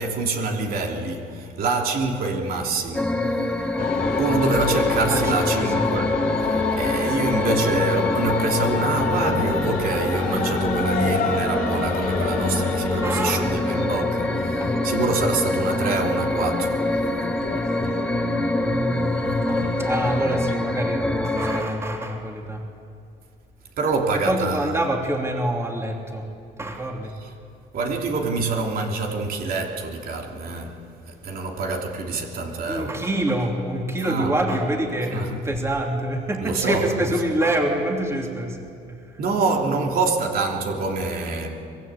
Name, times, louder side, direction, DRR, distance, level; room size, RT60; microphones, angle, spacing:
voice 1, 0.0-3.9 4.1-17.0 23.8-24.7 27.2-27.3 27.7-33.0 34.0-34.4 35.1-35.4 36.4-36.9 39.2-41.6, right 3 dB, 60° right, 3.1 m, -26 dB
sound 1, 2.9-21.6, left 1 dB, 5° left, 1.9 m, -25 dB
sound 2, 3.8-20.6, left 6 dB, 60° left, 2.5 m, -30 dB
voice 2, 5.1-5.5 5.8-5.9 13.0-13.5 14.5-14.8 18.5-22.7 24.2-26.3 26.6-27.2 32.7-38.6 38.9-39.0, right 1 dB, 15° right, 3.2 m, -26 dB
24.5 x 21.0 x 8.4 m
cardioid pair, 110°, 17 cm